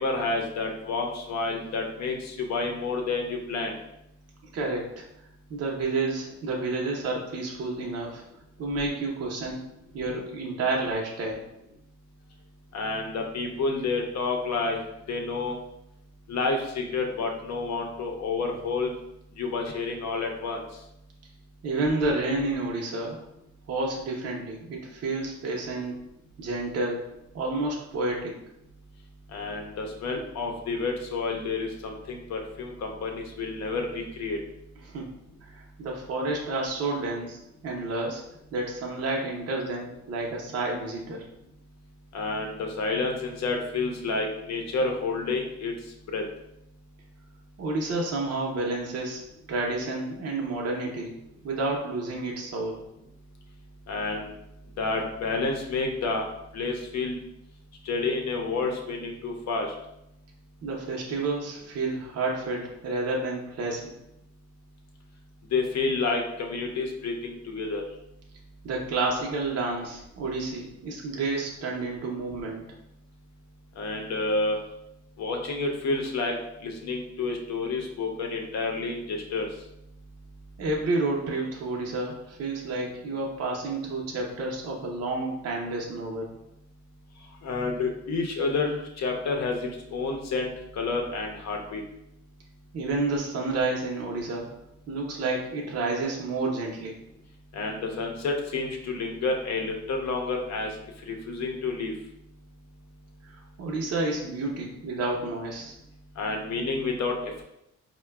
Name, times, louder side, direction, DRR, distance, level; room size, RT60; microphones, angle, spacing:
voice 1, 0.0-3.7 12.7-14.8 15.1-15.6 16.3-18.9 19.4-20.6 29.3-34.4 42.1-45.7 46.1-46.2 53.9-54.3 54.8-56.2 56.5-57.2 57.9-59.7 65.5-67.8 73.8-74.6 75.2-76.3 76.6-79.5 87.4-91.8 97.5-100.7 101.1-101.9 106.2-107.2, left 3 dB, 60° left, 2 dB, 0.7 m, -29 dB
voice 2, 4.5-5.0 5.5-8.2 8.6-9.6 9.9-11.4 21.6-23.2 23.7-26.0 26.4-27.0 27.3-28.3 34.8-35.1 35.5-38.2 38.5-41.2 47.6-49.2 49.5-51.1 51.4-52.8 60.6-63.9 68.6-72.6 80.6-86.3 92.7-94.5 94.9-96.9 103.3-105.7, right 2 dB, 55° right, -1 dB, 0.7 m, -30 dB
4.6 x 2.2 x 2.2 m, 0.83 s
cardioid pair, 90°, 30 cm